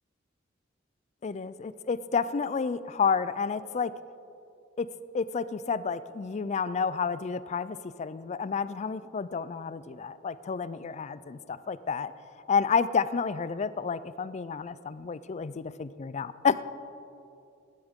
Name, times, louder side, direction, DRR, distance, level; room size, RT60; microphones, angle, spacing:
voice 1, 1.2-3.9 4.8-4.9 5.1-12.1 12.5-16.6, left 5 dB, 35° left, 16 dB, 0.4 m, -30 dB
17.0 x 12.5 x 3.6 m, 2.6 s
head